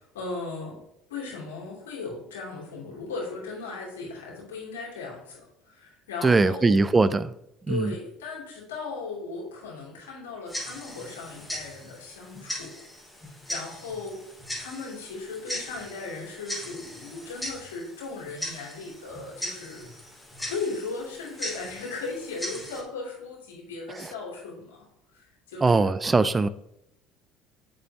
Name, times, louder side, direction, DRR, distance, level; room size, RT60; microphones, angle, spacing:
voice 1, 0.1-0.8 1.1-6.8 7.7-12.8 13.3-14.2 14.5-20.0 20.4-24.9 25.1-25.9, left 3 dB, 85° left, 3.1 m, -37 dB
voice 2, 6.2-7.3 7.7-7.9 24.0-24.1 25.6-26.5, right 3 dB, 25° right, 0.4 m, -21 dB
Tick-tock, 10.5-22.8, equal, 10° left, 3.1 m, -39 dB
7.6 x 6.7 x 3.0 m
hypercardioid pair, 65°, 0 cm